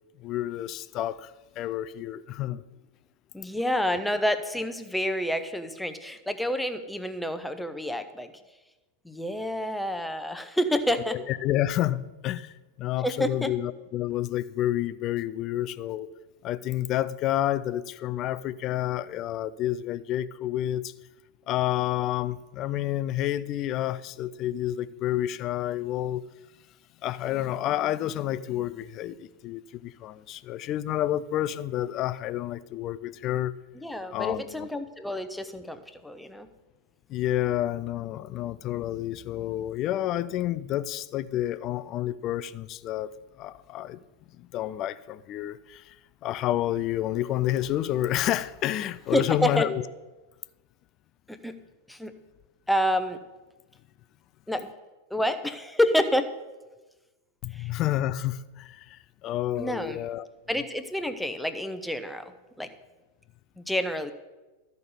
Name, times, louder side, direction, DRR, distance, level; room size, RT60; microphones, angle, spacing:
voice 1, 0.2-1.3 1.6-2.6 11.3-16.1 16.4-20.9 21.5-26.2 27.0-33.6 34.1-34.7 37.1-44.0 44.4-46.0 46.2-49.8 57.4-60.3, left 13 dB, 35° left, 0.4 m, -29 dB
voice 2, 3.3-8.3 9.0-11.2 13.0-13.5 33.8-36.5 49.1-49.7 51.3-51.6 51.9-52.1 52.7-53.2 54.5-54.7 55.1-56.3 57.5-57.7 59.6-60.0 60.5-62.3 62.6-62.7 63.6-64.1, equal, 5° left, 0.8 m, -28 dB
13.5 x 5.3 x 6.9 m
figure-of-eight pair, 90°, 0 cm